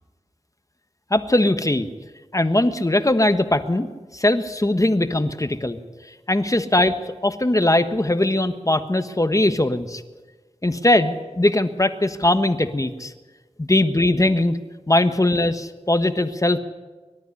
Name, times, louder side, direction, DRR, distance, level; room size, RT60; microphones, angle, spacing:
voice 1, 1.1-1.9 2.3-5.8 6.3-7.0 7.2-10.0 10.6-13.1 13.6-14.6 14.9-16.6, left 1 dB, 30° left, 9 dB, 1.2 m, -20 dB
24.0 x 12.5 x 9.9 m, 1.3 s
wide cardioid pair, 60°, 11 cm